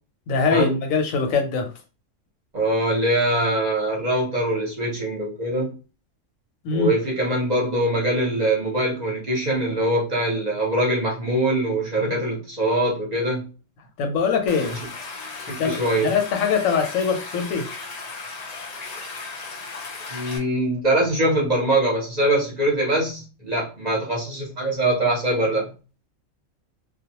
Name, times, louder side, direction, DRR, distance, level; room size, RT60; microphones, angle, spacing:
voice 1, 0.3-1.7 6.6-6.9 14.0-14.8 15.5-17.7, left 5 dB, 90° left, 1.1 m, -23 dB
voice 2, 2.5-5.7 6.7-13.5 14.6-14.7 15.5-16.1 20.1-25.7, right 1 dB, 40° right, 0.8 m, -23 dB
Stream, 14.5-20.4, left 4 dB, 65° left, 0.4 m, -36 dB
2.3 x 2.2 x 2.8 m
omnidirectional pair, 1.3 m